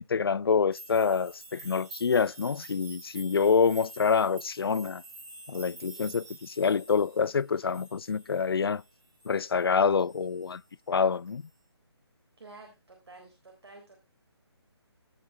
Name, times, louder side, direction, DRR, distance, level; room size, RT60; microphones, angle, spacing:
voice 1, 0.0-5.0 5.5-8.8 9.3-10.6 10.9-11.4, left 5 dB, 60° left, 0.5 m, -26 dB
sound 1, 0.7-9.7 10.0-10.6 11.3-11.4, right 2 dB, 15° right, 2.5 m, -49 dB
voice 2, 12.4-14.0, right 3 dB, 65° right, 3.9 m, -51 dB
17.0 x 6.0 x 3.5 m
hypercardioid pair, 175°, 14 cm